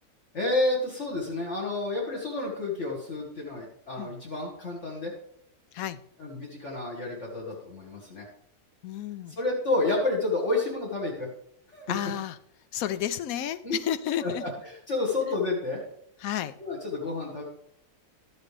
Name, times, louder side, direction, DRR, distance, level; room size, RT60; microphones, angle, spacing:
voice 1, 0.3-5.1 6.2-8.3 9.4-11.3 11.7-11.9 13.6-13.8 14.2-15.8 16.6-17.4, left 2 dB, 50° left, -2 dB, 2.0 m, -30 dB
voice 2, 8.8-9.4 11.9-12.4 12.7-14.4 16.2-16.5, left 10 dB, 75° left, 14 dB, 1.0 m, -31 dB
12.0 x 8.1 x 3.3 m, 0.74 s
omnidirectional pair, 1.6 m